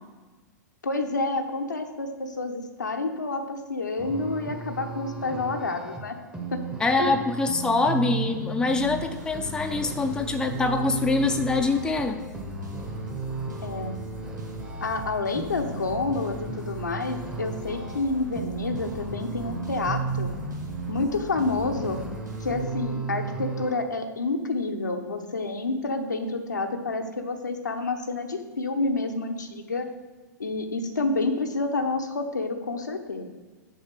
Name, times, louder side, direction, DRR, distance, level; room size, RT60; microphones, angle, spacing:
voice 1, 0.8-6.2 6.5-6.6 7.0-7.1 13.6-14.2 14.8-20.3 20.9-22.0 22.4-29.9 30.4-33.3, left 3 dB, 80° left, 4 dB, 0.9 m, -29 dB
sound 1, 4.0-23.8, right 4 dB, 10° right, 0.9 m, -35 dB
voice 2, 6.8-12.2, left 3 dB, 10° left, 5 dB, 0.5 m, -24 dB
sound 2, 8.7-23.3, equal, 80° right, 1.5 m, -40 dB
6.5 x 4.3 x 6.6 m, 1.3 s
figure-of-eight pair, 100°, 10 cm